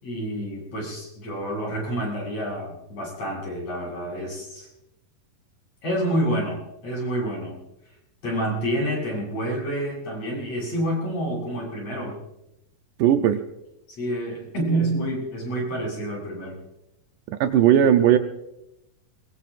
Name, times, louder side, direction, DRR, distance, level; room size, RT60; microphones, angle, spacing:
voice 1, 0.0-4.7 5.8-7.6 8.2-12.2 14.0-16.6, right 1 dB, 50° left, -3 dB, 9.0 m, -28 dB
voice 2, 13.0-13.4 17.3-18.2, right 10 dB, 75° right, 7 dB, 2.1 m, -17 dB
24.5 x 21.5 x 2.5 m, 0.86 s
omnidirectional pair, 4.0 m